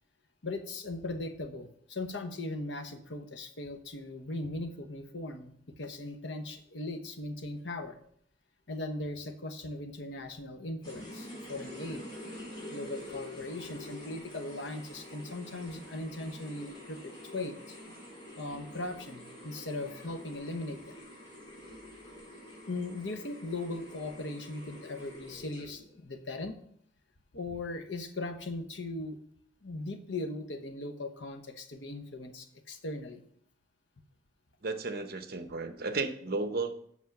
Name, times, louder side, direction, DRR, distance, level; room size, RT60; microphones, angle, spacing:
voice 1, 0.4-8.0 8.7-12.1 12.7-17.5 18.4-20.9 22.7-26.6 27.3-29.2 29.6-33.2, left 2 dB, 75° left, 8 dB, 1.0 m, -39 dB
sound 1, 10.8-25.9, left 1 dB, 25° left, 3.7 m, -47 dB
voice 2, 34.6-36.7, right 3 dB, 55° right, 8 dB, 0.9 m, -33 dB
8.2 x 6.1 x 5.9 m, 0.65 s
head